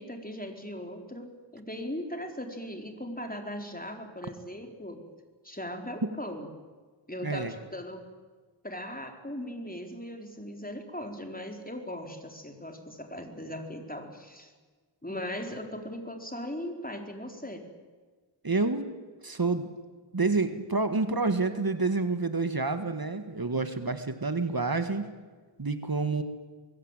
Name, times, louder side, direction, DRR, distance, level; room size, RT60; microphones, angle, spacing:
voice 1, 0.0-5.0 5.4-6.5 7.1-8.0 8.6-14.5 15.0-17.7, left 1 dB, 20° left, 4 dB, 4.2 m, -39 dB
voice 2, 7.2-7.5 18.4-18.9 19.2-19.7 20.1-25.1 25.6-26.2, right 3 dB, 50° right, 9 dB, 1.8 m, -28 dB
24.0 x 22.0 x 9.1 m, 1.4 s
wide cardioid pair, 45°, 45 cm